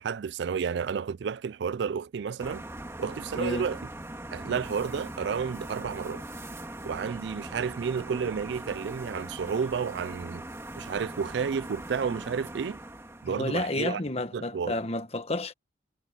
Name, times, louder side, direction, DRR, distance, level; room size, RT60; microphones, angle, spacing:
voice 1, 0.0-2.6 3.0-3.8 4.3-6.2 6.8-10.4 10.8-12.8 13.2-14.0 14.3-14.8, right 6 dB, 70° right, 0.4 m, -31 dB
sound 1, 2.4-13.7, right 1 dB, 15° right, 1.9 m, -41 dB
voice 2, 3.4-3.7 4.4-4.6 13.2-15.5, left 2 dB, 35° left, 1.3 m, -31 dB
head